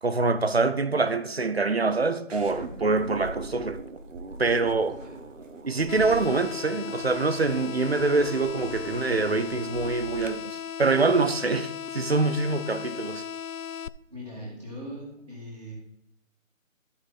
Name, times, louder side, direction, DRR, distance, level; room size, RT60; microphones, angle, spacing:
voice 1, 0.0-3.8 4.4-5.0 5.6-13.2, right 3 dB, 50° right, 0.6 m, -25 dB
sound 1, 2.3-10.3, right 2 dB, 65° right, 1.2 m, -41 dB
sound 2, 5.9-13.9, left 8 dB, 75° left, 0.5 m, -37 dB
voice 2, 14.1-15.7, equal, 25° right, 1.9 m, -40 dB
14.0 x 5.2 x 4.0 m
figure-of-eight pair, 180°, 40 cm